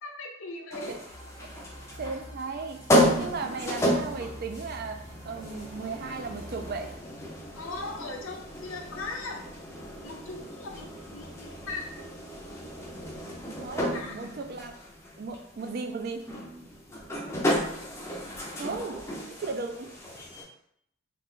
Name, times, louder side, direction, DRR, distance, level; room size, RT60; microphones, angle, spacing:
voice 1, 0.0-1.0 7.5-9.4 10.0-11.9 13.7-14.3 17.4-17.6, left 3 dB, 65° left, 2 dB, 0.6 m, -39 dB
sound 1, 0.7-20.4, equal, 15° left, 0.5 m, -32 dB
sound 2, 1.1-6.9, equal, 90° right, 0.7 m, -46 dB
voice 2, 2.0-2.8 3.2-6.9 13.5-14.8 15.2-16.2 18.6-19.9, right 4 dB, 45° right, 6 dB, 0.4 m, -36 dB
3.2 x 2.4 x 3.7 m, 0.72 s
head